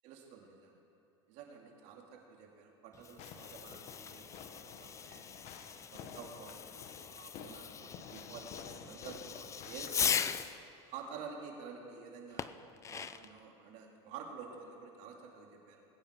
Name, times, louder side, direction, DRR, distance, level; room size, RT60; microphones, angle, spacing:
voice 1, 0.0-0.8 1.3-5.3 5.8-10.3 10.9-12.5 12.9-15.8, right 6 dB, 55° right, 1 dB, 2.4 m, -50 dB
Fireworks, 2.9-10.6 12.4-13.4, left 7 dB, 20° left, 0.4 m, -39 dB
Fireworks 2, 3.2-10.6, left 7 dB, 50° left, 1.1 m, -52 dB
20.5 x 9.0 x 4.4 m, 2.7 s
supercardioid pair, 115°, 14 cm